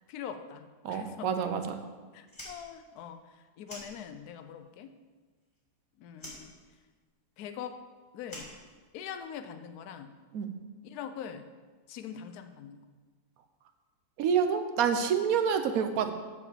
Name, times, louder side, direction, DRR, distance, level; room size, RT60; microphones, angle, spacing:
voice 1, 0.1-1.3 2.1-4.9 6.0-6.5 7.4-7.8 8.1-8.5 8.9-10.1 10.8-11.5 11.9-12.8, left 8 dB, 70° left, 9 dB, 1.2 m, -43 dB
voice 2, 0.8-1.8 10.3-10.5 14.2-16.1, right 7 dB, 65° right, 8 dB, 1.1 m, -28 dB
Fire, 2.3-4.5 4.8-5.8 6.1-9.3, equal, 15° left, 2.7 m, -48 dB
9.7 x 4.9 x 6.8 m, 1.4 s
omnidirectional pair, 1.7 m